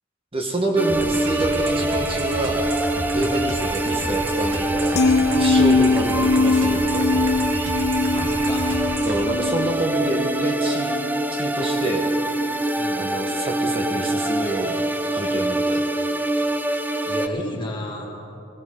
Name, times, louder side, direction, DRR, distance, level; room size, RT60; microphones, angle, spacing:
voice 1, 0.3-2.7 3.1-7.2 9.0-10.9 11.3-12.1 13.0-14.8 15.1-15.8, right 1 dB, 30° right, 2 dB, 1.2 m, -27 dB
sound 1, 0.8-17.3, right 1 dB, 10° right, 0.5 m, -24 dB
sound 2, 0.9-9.2, right 2 dB, 65° right, 1.3 m, -31 dB
sound 3, 4.9-11.2 11.6-11.9, left 4 dB, 50° left, 0.6 m, -22 dB
voice 2, 8.1-8.7 12.8-13.1 17.0-18.1, left 1 dB, 25° left, 0 dB, 1.9 m, -33 dB
18.5 x 16.0 x 3.8 m, 2.7 s
head